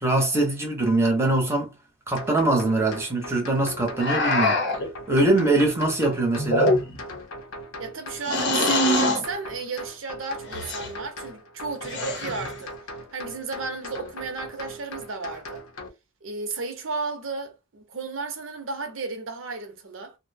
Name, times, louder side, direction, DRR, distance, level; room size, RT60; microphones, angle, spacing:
voice 1, 0.0-1.7 2.1-4.6 5.1-6.8, right 2 dB, 10° right, 0.8 m, -22 dB
sound 1, 2.2-15.9, equal, 90° left, 0.7 m, -40 dB
sound 2, 4.0-4.9 6.4-7.1 8.3-9.2 10.5-10.9 11.8-12.6, left 1 dB, 55° left, 0.7 m, -23 dB
voice 2, 7.8-12.8 13.1-15.6 16.2-20.2, right 3 dB, 65° right, 0.7 m, -33 dB
2.6 x 2.1 x 2.6 m
head